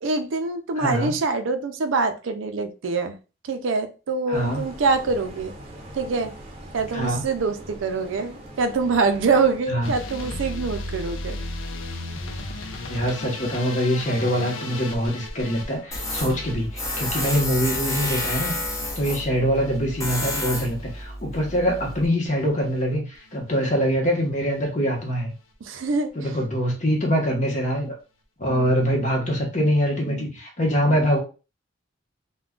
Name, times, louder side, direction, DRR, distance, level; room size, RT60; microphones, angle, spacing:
voice 1, 0.0-3.2 3.5-5.5 5.9-6.3 6.7-11.4 25.6-26.1 28.5-28.7 30.1-30.3, right 4 dB, 70° right, 0.4 m, -25 dB
voice 2, 0.7-1.2 4.3-4.6 6.9-7.2 9.7-9.9 12.9-18.5 19.0-25.3 26.1-27.9 28.4-31.2, equal, 40° left, 1.0 m, -24 dB
sound 1, 4.3-9.8, right 1 dB, 30° right, 0.7 m, -42 dB
sound 2, 9.8-21.9 22.2-22.8 23.1-23.7 24.1-24.3 24.6-24.7 25.0-25.1, left 2 dB, 80° left, 0.5 m, -36 dB
Tools, 15.9-22.1, left 1 dB, 15° left, 0.7 m, -30 dB
2.4 x 2.2 x 3.6 m
head